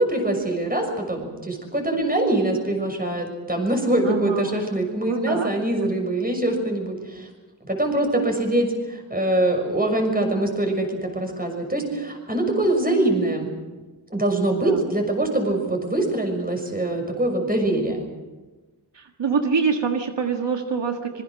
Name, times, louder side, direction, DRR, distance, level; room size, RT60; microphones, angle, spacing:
voice 1, 0.0-7.3 7.6-13.5 14.1-18.0, right 1 dB, 20° right, 3 dB, 6.3 m, -23 dB
voice 2, 4.0-4.6 5.1-5.5 5.8-5.9 14.6-14.8 18.9-21.2, right 5 dB, 90° right, 4 dB, 1.8 m, -25 dB
26.0 x 22.5 x 6.4 m, 1.2 s
wide cardioid pair, 85°, 42 cm